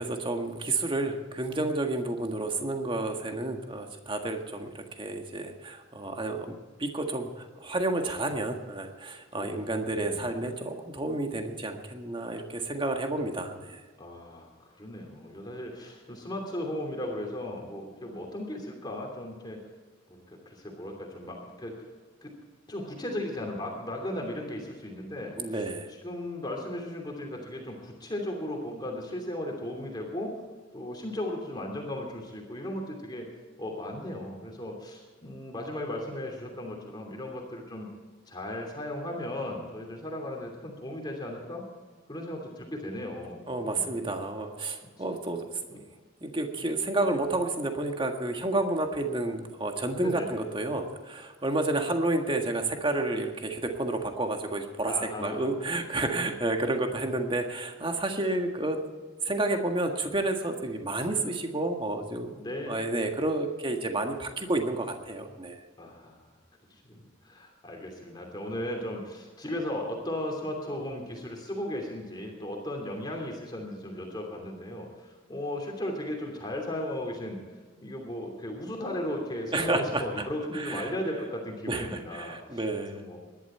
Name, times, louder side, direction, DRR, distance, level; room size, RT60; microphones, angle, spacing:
voice 1, 0.0-13.8 25.4-25.9 43.5-45.8 46.2-58.8 59.3-65.6 79.5-80.0 80.5-80.9 81.7-83.1, right 2 dB, 25° right, 4 dB, 1.7 m, -30 dB
voice 2, 14.0-19.6 20.1-21.9 22.2-22.3 22.7-30.4 30.7-33.3 33.6-37.9 38.3-41.6 42.1-43.9 44.8-44.9 45.7-45.8 50.0-50.3 54.8-55.5 62.4-62.8 65.8-66.2 66.7-77.4 77.8-82.6 82.9-83.2, left 1 dB, 20° left, 0 dB, 2.9 m, -36 dB
20.0 x 11.5 x 4.5 m, 1.4 s
head